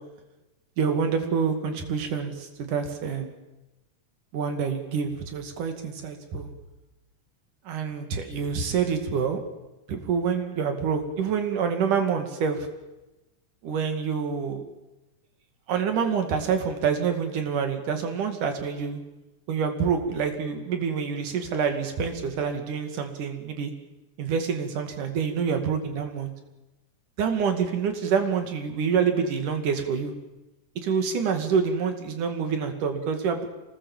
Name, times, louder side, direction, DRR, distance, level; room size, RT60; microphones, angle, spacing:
voice 1, 0.8-3.3 4.3-6.5 7.7-9.4 9.9-12.7 13.6-14.6 15.7-19.0 19.5-23.7 24.2-26.3 27.2-30.1 30.8-33.5, right 6 dB, 75° right, 6 dB, 3.8 m, -27 dB
26.0 x 19.5 x 7.4 m, 1.0 s
omnidirectional pair, 3.6 m